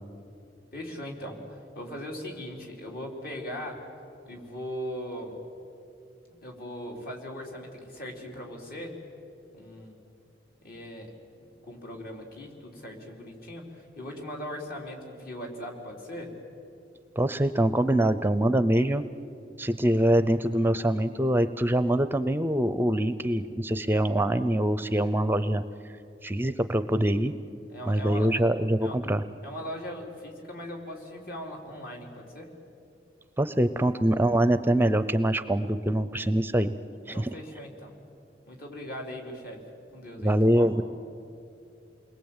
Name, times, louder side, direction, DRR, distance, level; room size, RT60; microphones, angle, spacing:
voice 1, 0.7-3.8 4.2-5.4 6.3-8.9 9.5-10.0 10.6-11.1 11.6-16.3 27.7-28.3 28.8-29.0 29.4-32.5 37.1-37.9 38.5-39.6 39.9-40.7, equal, 55° left, 1 dB, 4.4 m, -39 dB
voice 2, 17.2-19.0 19.6-25.6 26.2-27.3 27.9-29.2 33.4-36.7 37.1-37.3 40.2-40.8, right 1 dB, 10° right, 12 dB, 0.6 m, -24 dB
29.0 x 21.5 x 9.0 m, 2.6 s
head